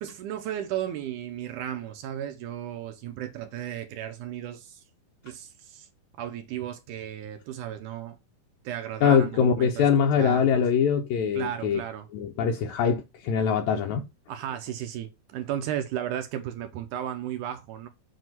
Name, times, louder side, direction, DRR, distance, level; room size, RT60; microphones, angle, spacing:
voice 1, 0.0-4.8 5.2-5.9 6.2-8.2 8.6-9.9 10.2-10.6 11.4-12.1 14.3-17.9, right 11 dB, 80° right, 2.0 m, -34 dB
voice 2, 9.0-11.8 12.1-14.0, left 7 dB, 80° left, 1.7 m, -23 dB
7.6 x 2.8 x 5.8 m
omnidirectional pair, 4.0 m